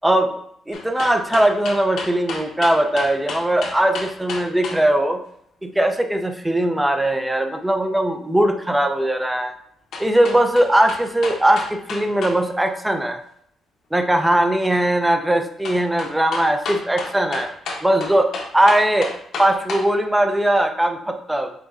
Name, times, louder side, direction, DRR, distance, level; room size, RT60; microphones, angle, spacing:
sound 1, 0.7-4.8 9.9-12.4 12.7-12.8 15.6-19.9 20.3-20.4, left 4 dB, 65° left, 0.9 m, -31 dB
voice 1, 0.7-5.2 5.6-9.5 10.0-13.2 13.9-17.5 17.8-19.1 19.4-21.5, right 1 dB, 5° right, 6 dB, 0.5 m, -19 dB
5.1 x 3.9 x 2.5 m, 0.71 s
cardioid pair, 125°, 0 cm